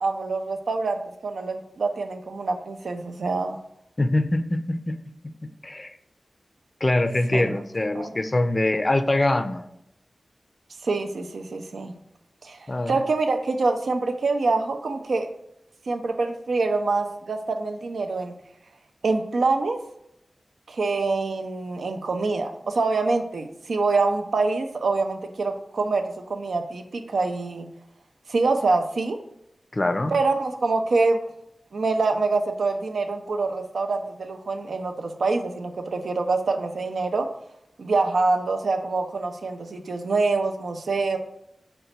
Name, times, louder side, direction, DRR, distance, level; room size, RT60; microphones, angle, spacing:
voice 1, 0.0-3.6 7.3-7.6 7.9-8.1 10.8-11.9 12.4-15.3 15.9-18.3 19.0-19.8 20.7-27.7 28.3-29.2 30.1-31.2 31.7-37.3 37.8-41.2, right 3 dB, 85° right, 5 dB, 0.3 m, -25 dB
voice 2, 4.0-5.0 5.6-5.9 6.8-9.6 12.7-12.9 29.7-30.1, left 2 dB, 40° left, 8 dB, 0.4 m, -23 dB
3.8 x 2.2 x 4.1 m, 0.79 s
cardioid pair, 40°, 0 cm